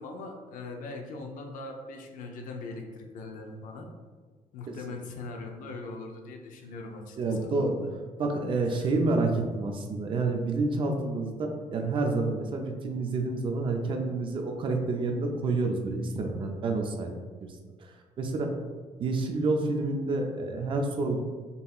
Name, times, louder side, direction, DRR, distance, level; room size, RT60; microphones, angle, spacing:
voice 1, 0.0-3.9 4.5-7.9 8.7-8.9 18.4-18.5, left 3 dB, 85° left, 2 dB, 0.6 m, -41 dB
voice 2, 7.2-7.8 8.2-17.1 18.2-18.5 19.0-21.2, right 3 dB, 40° right, 3 dB, 0.5 m, -28 dB
5.3 x 2.9 x 2.3 m, 1.5 s
cardioid pair, 160°, 14 cm